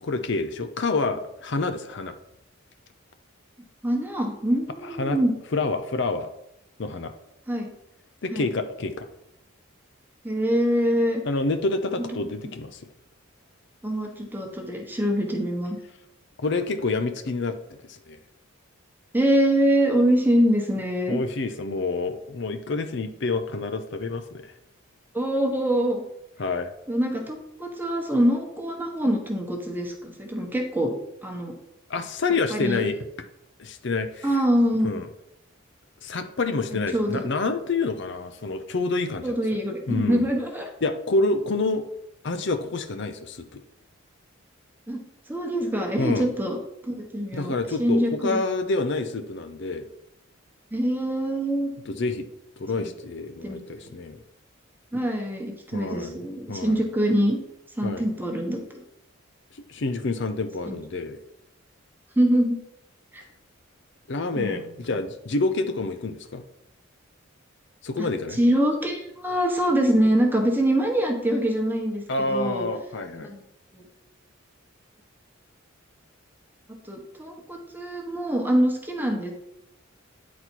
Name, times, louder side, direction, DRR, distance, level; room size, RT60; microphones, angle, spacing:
voice 1, 0.0-2.1 5.0-5.2 5.5-6.3 6.8-7.1 8.2-9.1 11.3-12.8 16.4-17.6 17.9-18.2 21.1-24.5 26.4-26.7 31.9-33.0 33.6-34.3 34.8-35.1 36.0-39.4 39.9-40.3 40.8-41.8 42.2-43.6 46.0-46.3 47.3-49.9 51.9-52.3 52.6-54.2 55.7-56.2 56.5-56.8 57.8-58.0 59.7-61.2 64.1-66.4 67.8-68.4 72.1-73.3, left 3 dB, 55° left, 8 dB, 0.6 m, -28 dB
voice 2, 3.8-5.3 7.5-7.7 8.3-8.5 10.2-11.2 13.8-15.8 19.1-21.2 25.1-26.0 26.9-31.0 31.2-31.5 32.5-32.8 34.2-34.9 36.7-37.3 39.2-40.7 44.9-45.0 45.3-46.6 46.8-48.4 50.7-51.7 52.8-52.9 53.4-53.9 54.9-57.4 57.8-58.8 60.7-60.8 62.2-62.6 63.1-63.2 64.3-64.6 68.3-72.7 73.2-73.4 73.7-73.8 76.8-79.3, equal, 10° right, 2 dB, 1.0 m, -24 dB
9.4 x 4.2 x 4.5 m, 0.82 s
head